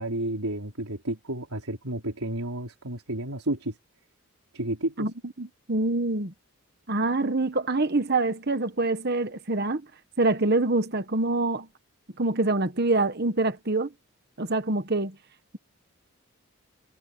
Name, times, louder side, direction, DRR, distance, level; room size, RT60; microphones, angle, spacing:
voice 1, 0.0-3.8 4.5-5.1, right 1 dB, 80° right, 3.9 m, -31 dB
voice 2, 5.4-6.3 6.9-9.8 10.2-11.7 12.2-13.9 14.4-15.1, right 2 dB, 45° right, 1.2 m, -25 dB
head